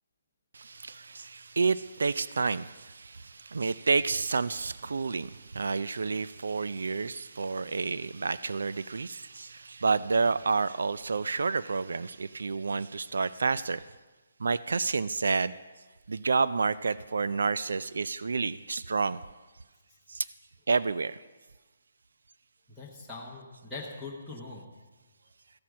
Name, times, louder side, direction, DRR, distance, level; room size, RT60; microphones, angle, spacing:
voice 1, 0.5-13.9 14.4-15.5 16.1-19.2 20.1-20.3 20.7-21.2, right 4 dB, 80° right, 0.4 m, -29 dB
voice 2, 22.7-24.7, left 3 dB, ahead, 1.0 m, -42 dB
14.0 x 8.6 x 6.2 m
hypercardioid pair, 180°, 0 cm